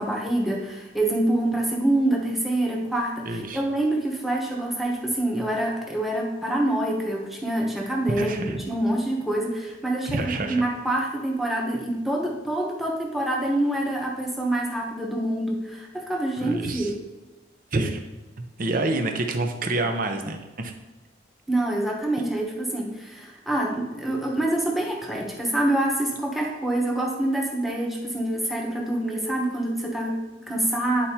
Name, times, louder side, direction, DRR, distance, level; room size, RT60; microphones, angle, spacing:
voice 1, 0.0-16.9 21.5-31.1, right 1 dB, ahead, -1 dB, 1.0 m, -26 dB
voice 2, 3.3-3.6 8.2-8.6 10.0-10.6 16.4-16.9 17.7-18.0 18.6-20.7, right 2 dB, 45° right, 5 dB, 0.7 m, -27 dB
10.0 x 4.4 x 2.8 m, 1.1 s
head